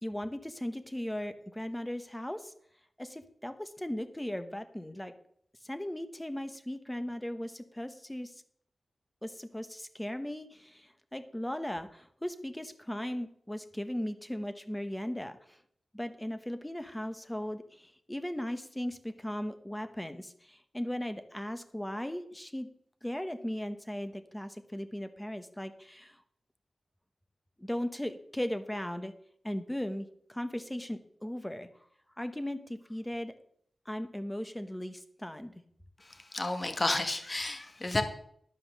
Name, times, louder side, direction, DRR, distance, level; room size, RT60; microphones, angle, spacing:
voice 1, 0.0-2.5 3.0-5.1 5.6-8.3 9.2-15.6 15.9-22.7 23.0-26.2 27.6-29.1 29.4-31.7 32.2-33.3 33.8-35.6, left 1 dB, 10° left, 9 dB, 1.0 m, -37 dB
voice 2, 36.0-38.0, left 2 dB, 30° left, 7 dB, 1.4 m, -31 dB
11.5 x 5.6 x 6.6 m, 0.65 s
wide cardioid pair, 105°, 0 cm